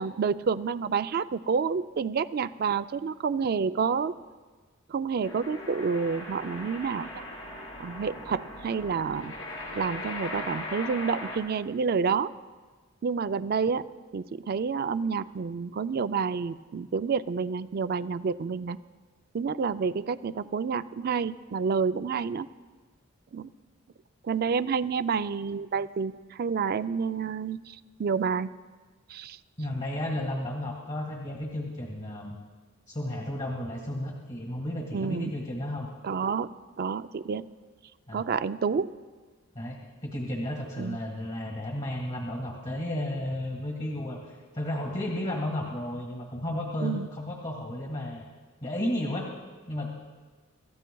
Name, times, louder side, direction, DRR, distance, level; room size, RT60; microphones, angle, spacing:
voice 1, 0.0-4.1 4.9-7.2 7.8-9.3 9.8-12.3 13.0-13.8 14.1-18.8 19.3-22.5 23.3-23.5 24.2-28.5 29.1-29.4 34.9-35.3 36.0-36.5 36.8-37.4 38.1-38.9 40.8-41.0 46.8-47.1, right 5 dB, 50° right, 13 dB, 0.4 m, -29 dB
sound 1, 5.2-11.4, left 1 dB, 85° left, 4.1 m, -39 dB
voice 2, 29.6-32.4 32.9-35.9 38.1-38.2 39.6-48.2 48.6-49.3 49.7-50.0, left 1 dB, 35° left, 0 dB, 1.7 m, -33 dB
27.0 x 14.0 x 2.3 m, 1.4 s
head